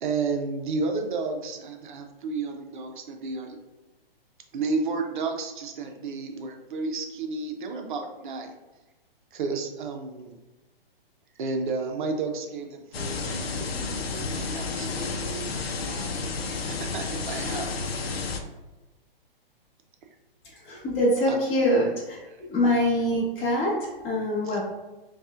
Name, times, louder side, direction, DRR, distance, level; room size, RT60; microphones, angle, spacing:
voice 1, 0.0-3.6 4.5-8.5 9.3-10.4 11.4-17.7 21.3-21.4 24.4-24.6, right 4 dB, 55° right, 4 dB, 0.7 m, -32 dB
sound 1, 12.9-18.4, left 4 dB, 85° left, 0.6 m, -31 dB
voice 2, 20.6-22.2 22.5-24.6, equal, 20° left, -7 dB, 1.1 m, -24 dB
5.2 x 2.4 x 2.4 m, 1.1 s
hypercardioid pair, 145°, 30 cm